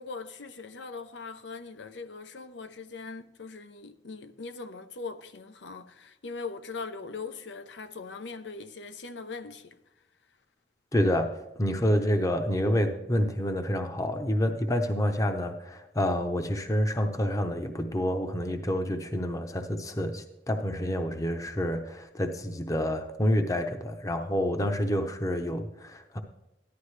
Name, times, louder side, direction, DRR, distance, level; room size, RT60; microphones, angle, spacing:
voice 1, 0.0-9.8, left 4 dB, 90° left, 0.7 m, -40 dB
voice 2, 10.9-26.2, equal, 20° left, 0.7 m, -28 dB
14.5 x 11.5 x 3.2 m
head